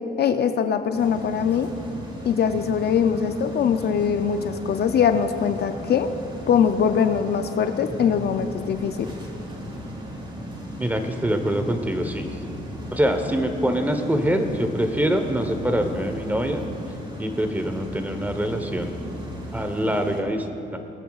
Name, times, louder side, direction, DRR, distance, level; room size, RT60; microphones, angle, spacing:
voice 1, 0.2-1.7 2.2-6.1 6.5-9.1, left 7 dB, 55° left, 8 dB, 0.5 m, -22 dB
sound 1, 0.9-20.2, equal, 25° right, 1.8 m, -37 dB
sound 2, 7.8-19.9, left 1 dB, 70° right, 2.7 m, -42 dB
voice 2, 10.8-12.3 12.9-16.6 17.2-18.9 19.5-20.5 20.7-20.8, equal, 10° right, 6 dB, 0.9 m, -24 dB
20.0 x 9.1 x 2.4 m, 2.9 s
cardioid pair, 90°, 20 cm